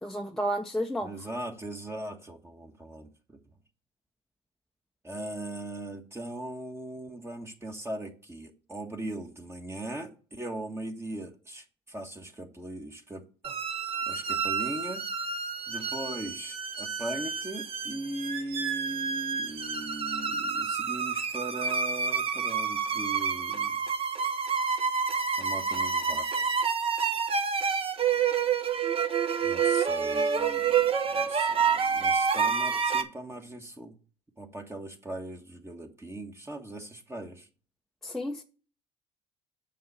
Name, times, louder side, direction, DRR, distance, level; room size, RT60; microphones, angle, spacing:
voice 1, 0.0-1.1 38.0-38.4, equal, ahead, 0.8 m, -31 dB
voice 2, 1.0-3.4 5.0-13.2 14.0-15.0 15.7-23.8 25.4-26.3 29.4-33.9 34.4-37.5, right 1 dB, 15° right, 1.5 m, -39 dB
sound 1, 13.4-33.0, right 6 dB, 35° right, 1.2 m, -28 dB
7.5 x 5.8 x 6.9 m
hypercardioid pair, 70°, 16 cm